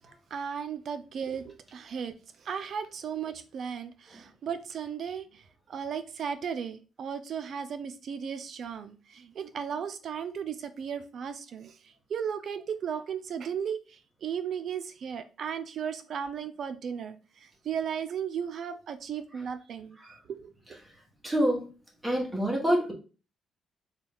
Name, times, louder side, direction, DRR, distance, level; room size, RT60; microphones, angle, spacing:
voice 1, 0.3-2.1 2.4-5.4 5.7-11.8 12.1-20.8, right 7 dB, 60° right, 0.4 m, -35 dB
voice 2, 21.2-21.7 22.0-22.9, equal, 15° right, 1.1 m, -26 dB
3.8 x 2.3 x 3.4 m
cardioid pair, 90°, 0 cm